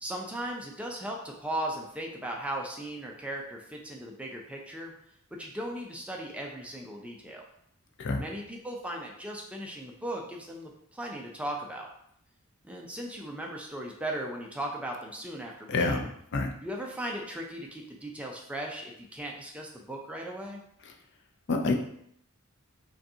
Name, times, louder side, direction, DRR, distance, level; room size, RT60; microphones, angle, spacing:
voice 1, 0.0-4.9 5.3-7.4 8.2-11.9 12.6-16.1 16.6-20.6, right 1 dB, 5° right, 0 dB, 0.4 m, -37 dB
voice 2, 15.7-16.1 16.3-16.5 21.5-21.7, left 3 dB, 50° left, 3 dB, 0.4 m, -27 dB
5.1 x 2.3 x 2.7 m, 0.70 s
head